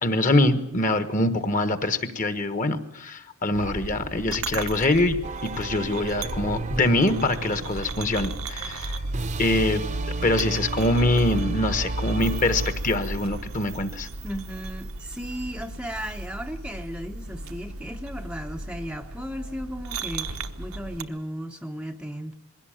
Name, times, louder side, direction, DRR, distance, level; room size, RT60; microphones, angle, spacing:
voice 1, 0.0-5.2 5.4-8.9 9.4-9.8 10.2-14.1, left 2 dB, 35° left, 11 dB, 1.3 m, -24 dB
sound 1, 3.5-21.0, right 2 dB, 75° right, 1.0 m, -34 dB
sound 2, 5.2-12.7, right 3 dB, 35° right, 0.8 m, -36 dB
voice 2, 14.2-22.3, equal, 5° right, 4 dB, 0.7 m, -35 dB
21.0 x 16.5 x 9.0 m, 0.83 s
head